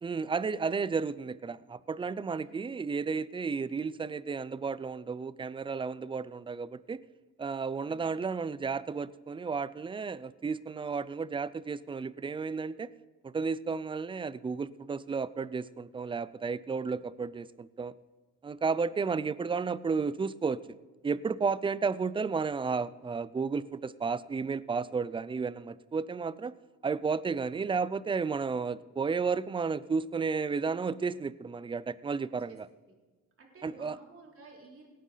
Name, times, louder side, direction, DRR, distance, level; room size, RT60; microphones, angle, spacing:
voice 1, 0.0-7.0 7.4-12.9 13.2-17.9 18.4-20.6 21.0-26.5 26.8-32.7 33.6-34.0, right 5 dB, 15° right, 18 dB, 0.4 m, -32 dB
voice 2, 2.4-2.9 32.2-32.6 32.8-32.9 33.4-34.9, right 3 dB, 45° right, -1 dB, 3.5 m, -55 dB
18.0 x 9.3 x 4.0 m, 1.3 s
cardioid pair, 90°, 30 cm